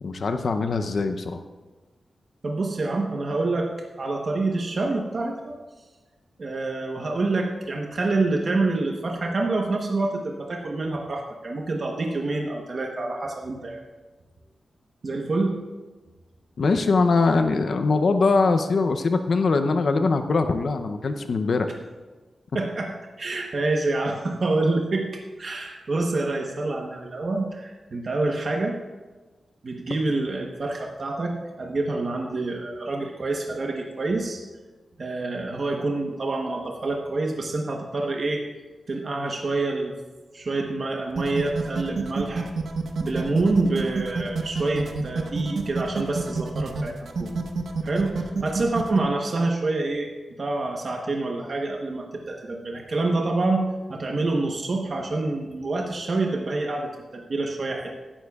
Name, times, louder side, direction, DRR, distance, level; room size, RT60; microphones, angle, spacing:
voice 1, 0.0-1.4 16.6-21.7, left 4 dB, 55° left, 7 dB, 0.6 m, -22 dB
voice 2, 2.4-3.7 4.0-5.5 6.4-13.8 15.0-15.5 22.5-22.9 23.2-28.8 29.6-34.4 35.0-38.4 38.9-39.9 40.3-42.5 43.0-46.9 47.2-47.3 47.8-50.1 50.4-57.9, right 2 dB, 40° right, 1 dB, 1.0 m, -27 dB
sound 1, 41.2-49.0, right 4 dB, 65° right, 1.0 m, -28 dB
16.0 x 11.5 x 2.4 m, 1.3 s
wide cardioid pair, 175°, 0 cm